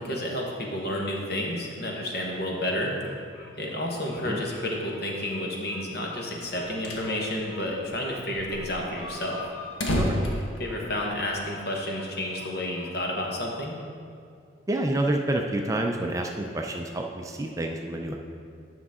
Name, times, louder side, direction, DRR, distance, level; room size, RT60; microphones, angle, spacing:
voice 1, 0.0-2.9 3.6-9.4 10.6-13.8, left 1 dB, 55° left, -1 dB, 1.2 m, -30 dB
Bird vocalization bird call bird song, 2.1-12.9, left 1 dB, 20° left, 1.8 m, -50 dB
sound 1, 6.6-7.1 7.4-7.5 7.7-7.8 8.3-11.3, left 1 dB, 85° left, 1.1 m, -30 dB
voice 2, 14.7-18.2, right 1 dB, 15° right, 2 dB, 0.4 m, -28 dB
9.8 x 5.9 x 3.6 m, 2.4 s
head